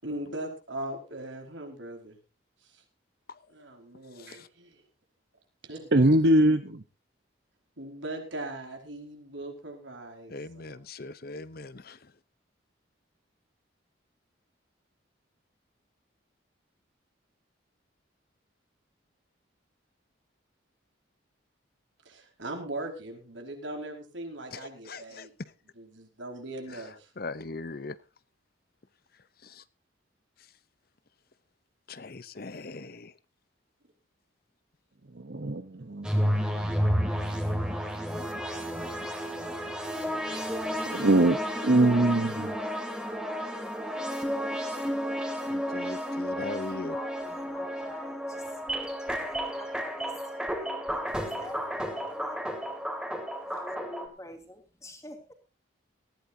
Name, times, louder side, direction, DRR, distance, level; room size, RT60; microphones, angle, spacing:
voice 1, 0.0-2.2 2.6-2.8 3.5-4.8 5.6-6.2 7.8-10.8 22.0-25.3 25.7-27.1, right 1 dB, 75° right, 5.0 m, -40 dB
voice 2, 4.1-4.5 10.3-12.1 24.5-25.3 26.7-26.8 27.2-28.0 29.4-29.6 31.9-33.1 45.5-47.0, left 3 dB, 50° left, 0.7 m, -40 dB
voice 3, 5.9-6.8 35.2-36.3 40.9-41.4 41.6-42.5, right 1 dB, 55° right, 0.9 m, -22 dB
sound 1, 36.0-54.1, equal, 5° right, 2.6 m, -32 dB
voice 4, 41.6-44.5 46.9-48.6 49.2-50.4 50.8-51.1 51.4-52.5 53.5-55.3, left 1 dB, 15° left, 2.9 m, -47 dB
19.0 x 15.5 x 2.8 m
head